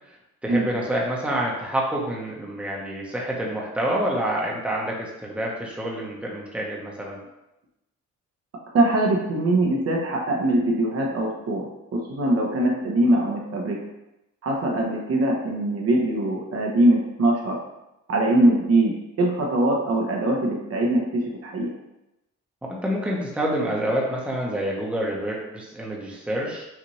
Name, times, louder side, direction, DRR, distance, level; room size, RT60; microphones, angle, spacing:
voice 1, 0.4-7.2 22.6-26.6, right 1 dB, 5° right, -3 dB, 0.9 m, -27 dB
voice 2, 8.7-11.7 11.9-13.8 14.4-17.6 18.1-21.7, right 1 dB, 50° right, -1 dB, 1.0 m, -22 dB
5.9 x 2.6 x 3.0 m, 0.93 s
cardioid pair, 90°, 30 cm